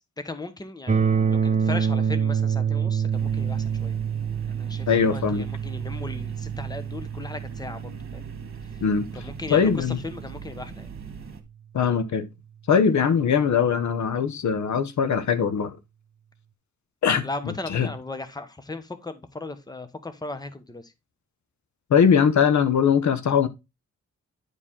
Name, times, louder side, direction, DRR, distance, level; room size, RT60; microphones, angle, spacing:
voice 1, 0.2-1.0 1.3-3.9 4.4-8.3 9.2-10.9 17.2-20.9, left 3 dB, 15° left, 1.0 m, -37 dB
sound 1, 0.9-10.8, right 7 dB, 25° right, 1.0 m, -27 dB
sound 2, 3.1-11.4, right 6 dB, 45° right, 1.7 m, -41 dB
voice 2, 4.9-5.4 8.8-9.1 9.5-10.0 11.7-12.3 12.7-15.8 17.0-17.9 21.9-23.5, left 7 dB, 75° left, 0.8 m, -21 dB
9.8 x 4.8 x 3.6 m
wide cardioid pair, 130°, 29 cm